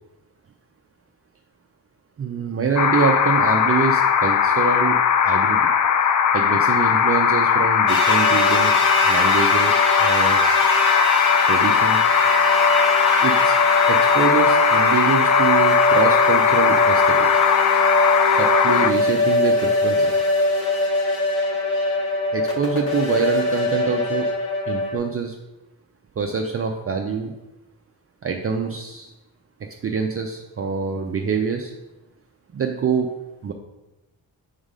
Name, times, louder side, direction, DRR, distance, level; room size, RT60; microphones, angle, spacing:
voice 1, 2.2-5.0 5.2-5.7 6.3-10.4 11.5-12.0 13.2-13.6 13.9-17.3 18.3-20.2 22.3-24.3 24.7-25.3 26.2-27.3 28.2-29.1 29.6-31.7 32.5-33.1 33.4-33.5, right 6 dB, 35° right, 2 dB, 0.5 m, -25 dB
sound 1, 2.8-18.9, left 7 dB, 50° left, 0.4 m, -18 dB
sound 2, 7.9-25.0, left 1 dB, 70° left, 1.6 m, -22 dB
5.1 x 4.0 x 5.1 m, 0.99 s
wide cardioid pair, 115°, 39 cm